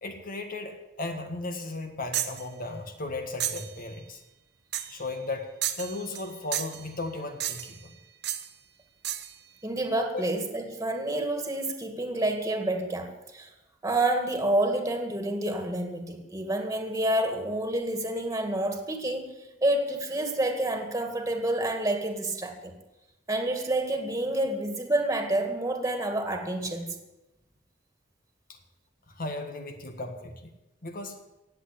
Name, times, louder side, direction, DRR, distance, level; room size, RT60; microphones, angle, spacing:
voice 1, 0.0-4.2 4.9-5.5 5.8-8.0 10.1-10.3 28.5-28.6 29.2-30.5 30.8-31.2, left 2 dB, 50° left, 6 dB, 1.7 m, -36 dB
sound 1, 2.1-2.4 3.4-3.7 4.7-5.0 5.6-6.3 6.5-6.8 7.4-7.8 8.2-8.5 9.0-9.3, right 11 dB, 65° right, 1.2 m, -32 dB
voice 2, 9.6-13.5 13.8-19.3 19.6-22.7 23.3-27.0, right 1 dB, 15° right, 5 dB, 2.1 m, -28 dB
17.5 x 8.1 x 8.4 m, 0.98 s
head